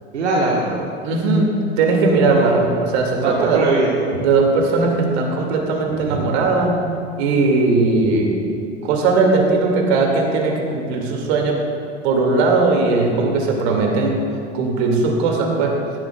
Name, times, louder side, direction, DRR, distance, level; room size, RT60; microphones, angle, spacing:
voice 1, 0.1-0.8 2.3-2.6 3.2-4.1 6.1-6.3, right 3 dB, 90° right, -3 dB, 1.3 m, -21 dB
voice 2, 1.0-3.6 4.2-6.7 7.2-8.4 8.8-11.6 12.0-14.2 14.5-15.8, right 3 dB, 65° right, 1 dB, 2.1 m, -18 dB
16.0 x 11.5 x 2.3 m, 2.4 s
hypercardioid pair, 85°, 33 cm